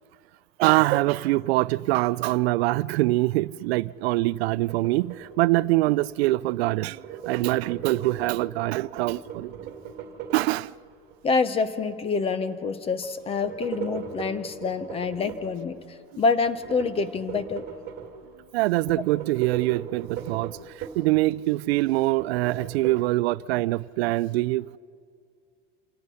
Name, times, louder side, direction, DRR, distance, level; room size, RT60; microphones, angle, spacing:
voice 1, 0.6-7.0 7.3-9.5 10.3-10.7 18.5-20.5 21.0-24.8, right 19 dB, 90° right, 0.5 m, -24 dB
sound 1, 4.4-6.1 6.4-11.2 13.0-15.5 16.4-18.4 18.8-21.2 21.5-22.9, right 7 dB, 35° right, 2.0 m, -39 dB
voice 2, 11.2-15.8 16.2-17.6, left 4 dB, 20° left, 0.7 m, -26 dB
27.0 x 17.5 x 5.7 m
supercardioid pair, 150°, 30 cm